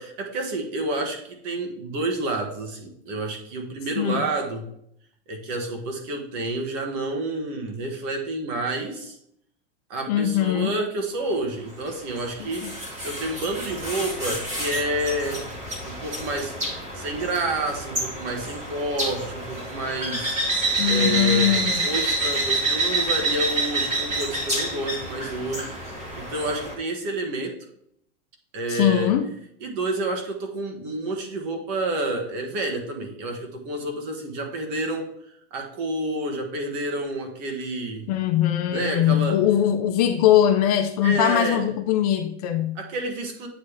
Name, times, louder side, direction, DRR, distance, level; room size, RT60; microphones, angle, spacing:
voice 1, 0.0-4.6 5.3-9.2 9.9-15.4 15.8-20.3 20.9-25.9 26.2-27.5 28.5-29.1 29.6-35.1 35.5-38.1 38.7-39.4 41.0-41.6 42.7-43.5, right 2 dB, 40° right, 4 dB, 1.5 m, -29 dB
voice 2, 10.1-10.7 12.4-12.7 20.8-21.9 28.7-29.3 38.1-42.8, left 11 dB, 35° left, 6 dB, 0.4 m, -21 dB
sound 1, 11.9-26.7, right 2 dB, 20° right, 1.8 m, -28 dB
9.2 x 3.2 x 3.3 m, 0.72 s
supercardioid pair, 165°, 33 cm